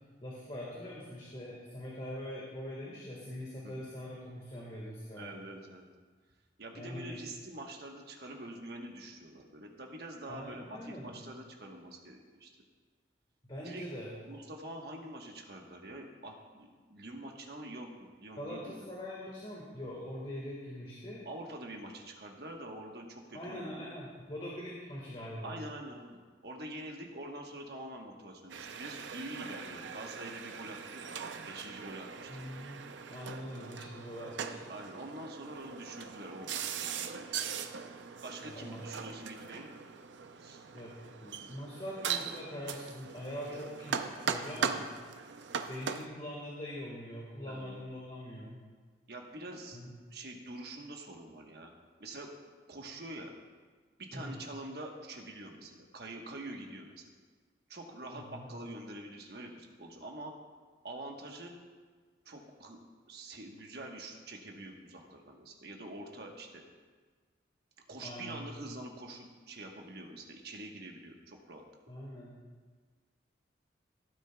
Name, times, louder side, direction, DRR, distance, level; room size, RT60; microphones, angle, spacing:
voice 1, 0.2-5.3 6.7-7.2 10.3-11.1 13.4-14.1 18.4-21.2 23.3-25.6 32.3-32.8 33.1-34.7 38.4-38.8 40.7-40.9 41.2-44.8 45.5-48.6 49.7-49.9 54.1-54.4 58.1-58.5 68.0-68.5 71.9-72.3, left 1 dB, 30° left, -5 dB, 1.6 m, -43 dB
voice 2, 5.1-5.9 6.6-12.5 13.6-13.8 14.2-18.8 21.2-23.9 25.4-31.1 31.5-32.3 34.7-37.2 38.2-39.7 40.4-40.6 47.5-47.9 49.1-49.8 50.1-51.7 52.0-52.3 52.7-53.3 54.0-57.0 57.7-60.3 60.8-61.6 62.2-62.8 63.1-66.7 67.9-71.6, right 1 dB, 60° right, 1 dB, 1.2 m, -45 dB
sound 1, 28.5-46.1, right 6 dB, 80° right, 0.5 m, -40 dB
16.0 x 9.0 x 2.3 m, 1.5 s
head